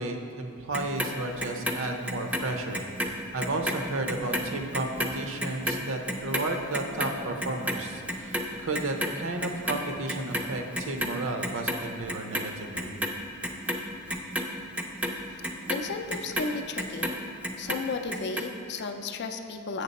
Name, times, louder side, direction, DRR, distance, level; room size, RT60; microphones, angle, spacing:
voice 1, 0.0-12.9, right 2 dB, 60° right, 4 dB, 0.7 m, -33 dB
Clock, 0.7-3.1 3.4-9.8 10.1-11.1 11.4-12.4 12.8-17.2 17.4-18.4 18.8-18.9, equal, 5° right, 0.4 m, -31 dB
voice 2, 15.7-17.2 17.6-19.8, left 4 dB, 50° left, 7 dB, 0.4 m, -34 dB
7.3 x 6.7 x 4.1 m, 2.6 s
head